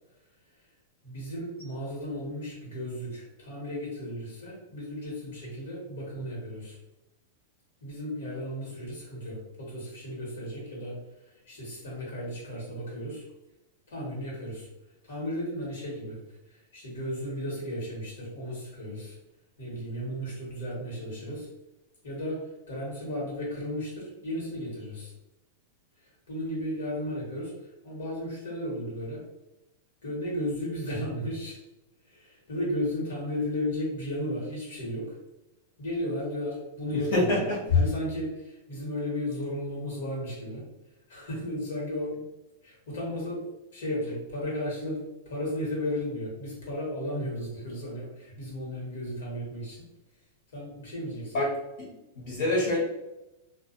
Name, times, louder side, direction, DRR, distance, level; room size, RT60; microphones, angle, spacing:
voice 1, 1.0-6.8 7.8-10.9 11.3-13.2 13.9-14.7 15.0-16.2 16.5-19.2 19.6-21.5 22.0-22.4 22.7-25.1 26.3-27.5 27.8-29.2 30.0-31.6 32.1-35.2 35.8-37.5 37.7-40.6 41.1-42.2 42.6-49.8 50.5-51.3, left 1 dB, 80° left, -4 dB, 1.4 m, -34 dB
voice 2, 37.1-37.8 51.3-51.5 52.2-52.8, left 2 dB, 65° left, -5 dB, 1.2 m, -25 dB
2.5 x 2.3 x 2.5 m, 0.95 s
supercardioid pair, 145°, 0 cm